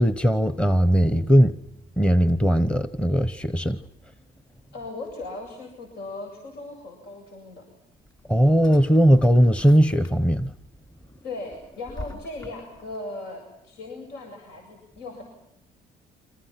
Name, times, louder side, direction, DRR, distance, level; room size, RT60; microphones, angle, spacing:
voice 1, 0.0-1.6 2.0-3.8 8.3-10.5, equal, 5° left, 1.0 m, -19 dB
voice 2, 4.7-7.7 11.2-15.2, left 2 dB, 80° left, 7.7 m, -38 dB
Drawer open or close, 7.9-10.5 10.9-13.0, left 2 dB, 25° left, 3.7 m, -44 dB
30.0 x 26.5 x 5.9 m
cardioid pair, 110°, 17 cm